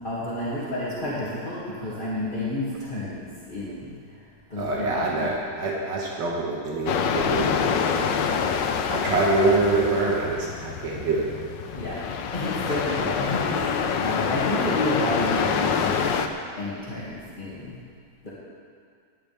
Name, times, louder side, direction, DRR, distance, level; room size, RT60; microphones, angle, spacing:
voice 1, 0.0-4.2 4.5-5.3 8.9-9.1 11.7-12.0 12.3-16.2 16.6-17.8 18.2-18.3, left 1 dB, 25° left, -10 dB, 2.5 m, -30 dB
voice 2, 4.6-8.1 8.9-11.3, right 2 dB, 80° right, -3 dB, 2.1 m, -25 dB
sound 1, 6.9-16.3, left 6 dB, 85° left, 1.4 m, -26 dB
19.5 x 10.0 x 3.5 m, 2.2 s
omnidirectional pair, 1.9 m